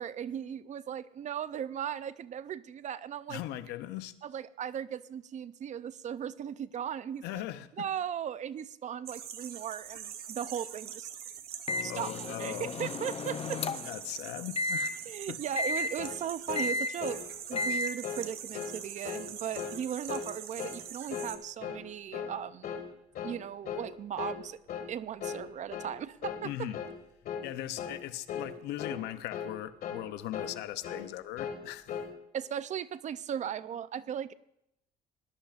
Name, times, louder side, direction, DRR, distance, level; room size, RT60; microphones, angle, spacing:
voice 1, 0.0-3.4 4.2-7.4 7.8-11.1 11.8-13.6 15.1-17.2 17.5-22.7 23.2-24.6 24.9-26.7 32.3-34.3, right 9 dB, 45° right, 16 dB, 0.5 m, -37 dB
voice 2, 3.3-4.1 7.2-7.9 11.9-12.9 13.8-14.9 15.3-15.4 26.4-26.8 27.4-31.9, left 13 dB, 90° left, 12 dB, 0.7 m, -39 dB
sound 1, 9.1-21.4, right 9 dB, 65° right, 1.1 m, -44 dB
Microwave oven, 11.7-14.0 14.6-14.9 15.6-15.9 16.6-16.9 17.6-17.9, left 2 dB, 35° left, 0.6 m, -33 dB
sound 2, 16.0-16.2 16.5-16.7 17.0-17.2 17.5-17.7 18.0-18.3 18.5-18.8 19.0-19.3 19.5-19.8 20.1-20.3 20.6-20.8 21.1-21.3 21.6-21.8 22.1-22.4 22.6-22.9 23.1-23.4 23.6-23.9 24.2-24.4 24.7-24.9 25.2-25.4 25.7-25.9 26.2-26.4 26.7-27.0 27.2-27.5 27.8-28.0 28.3-28.5 28.8-29.0 29.3-29.5 29.8-30.0 30.3-30.6 30.8-31.1 31.4-32.1, left 7 dB, 60° left, 2.0 m, -38 dB
20.0 x 11.5 x 2.5 m, 0.80 s
cardioid pair, 110°, 17 cm